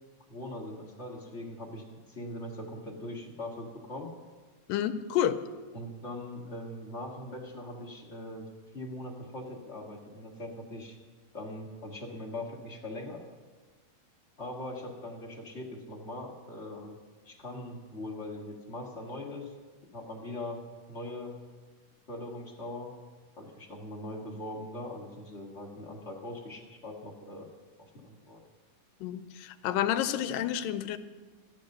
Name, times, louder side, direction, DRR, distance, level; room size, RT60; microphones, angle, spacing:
voice 1, 0.3-4.1 5.7-8.5 8.7-11.0 11.3-13.2 14.4-17.0 17.2-19.5 19.9-20.6 20.9-21.3 22.1-22.9 23.4-27.5 27.8-28.4, left 1 dB, 45° left, -2 dB, 0.9 m, -41 dB
voice 2, 4.7-5.4 29.0-31.0, left 10 dB, 85° left, 10 dB, 2.3 m, -29 dB
13.5 x 10.5 x 6.6 m, 1.4 s
omnidirectional pair, 3.9 m